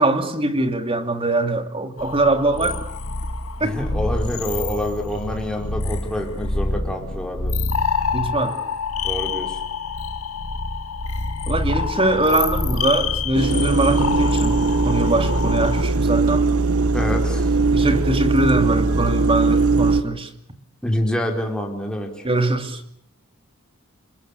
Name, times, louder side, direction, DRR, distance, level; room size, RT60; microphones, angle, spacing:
voice 1, 0.0-2.8 3.6-3.8 8.1-8.6 11.5-16.5 17.7-20.3 22.2-22.8, right 2 dB, 25° right, 8 dB, 2.8 m, -22 dB
sound 1, 2.0-15.8, left 4 dB, 75° left, 2.2 m, -26 dB
voice 2, 3.6-7.5 9.0-9.6 16.9-17.5 20.8-22.1, equal, 5° left, 2 dB, 5.0 m, -26 dB
sound 2, 13.3-20.0, right 3 dB, 80° right, 1.3 m, -20 dB
28.5 x 21.0 x 8.4 m, 0.68 s
head